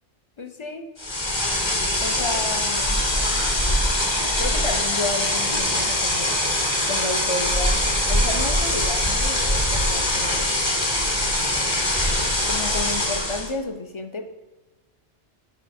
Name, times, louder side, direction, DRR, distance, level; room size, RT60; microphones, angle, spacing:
voice 1, 0.4-0.9 2.0-3.1 4.4-6.4 6.9-10.6 12.5-14.3, left 2 dB, 40° left, 7 dB, 0.4 m, -32 dB
sound 1, 1.0-13.5, left 1 dB, 25° left, 1.0 m, -23 dB
10.0 x 4.8 x 4.2 m, 1.1 s
omnidirectional pair, 1.2 m